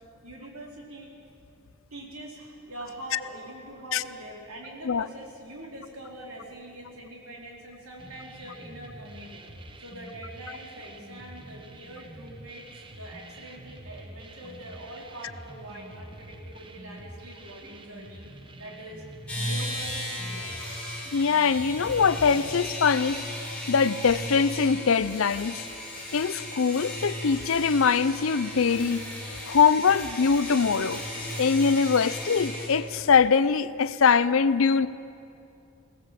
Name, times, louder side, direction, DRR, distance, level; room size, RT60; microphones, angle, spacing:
voice 1, 0.2-1.1 1.9-9.5 9.8-18.2 18.6-19.0 19.3-20.6, right 1 dB, 85° right, -1 dB, 4.2 m, -43 dB
sound 1, 8.0-22.6, right 1 dB, 25° right, 0.9 m, -46 dB
sound 2, 19.3-32.7, left 1 dB, 5° left, 5.4 m, -35 dB
voice 2, 21.1-23.2 23.7-25.6 26.1-29.0 29.5-31.0 31.4-34.9, left 5 dB, 65° left, 16 dB, 0.5 m, -22 dB
20.5 x 17.5 x 7.6 m, 2.7 s
head